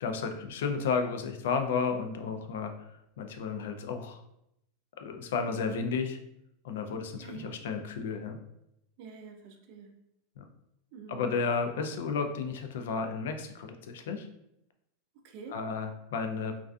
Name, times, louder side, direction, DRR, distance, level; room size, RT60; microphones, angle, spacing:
voice 1, 0.0-2.9 3.2-4.2 5.0-6.2 6.6-8.4 10.4-10.5 11.1-14.3 15.5-16.5, left 5 dB, 80° left, 6 dB, 0.3 m, -32 dB
voice 2, 7.2-7.5 9.0-10.0 10.9-11.3 15.2-15.6, right 5 dB, 50° right, 4 dB, 0.4 m, -47 dB
2.3 x 2.3 x 2.4 m, 0.81 s
supercardioid pair, 155°, 0 cm